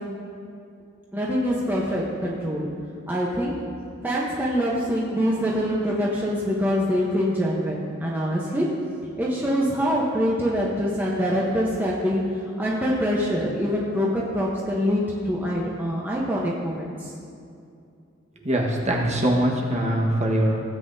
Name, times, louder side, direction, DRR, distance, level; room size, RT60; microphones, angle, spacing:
voice 1, 1.1-2.7 3.1-3.6 4.0-8.7 9.2-12.2 12.6-17.1, equal, 10° right, -5 dB, 1.0 m, -24 dB
voice 2, 18.4-20.6, right 1 dB, 35° right, -2 dB, 1.5 m, -22 dB
16.5 x 8.5 x 2.8 m, 2.4 s
head